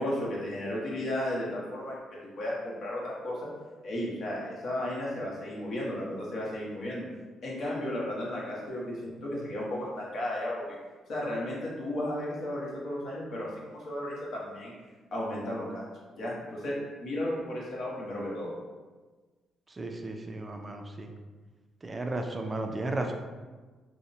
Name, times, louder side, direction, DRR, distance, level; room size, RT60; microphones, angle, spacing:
voice 1, 0.0-3.4 3.8-7.1 7.4-10.8 11.1-14.7 15.1-15.8 16.2-18.5, left 1 dB, 60° left, -5 dB, 0.8 m, -34 dB
voice 2, 19.7-21.1 21.8-23.1, right 2 dB, 25° right, 4 dB, 0.3 m, -34 dB
2.8 x 2.0 x 2.6 m, 1.3 s
cardioid pair, 90°, 0 cm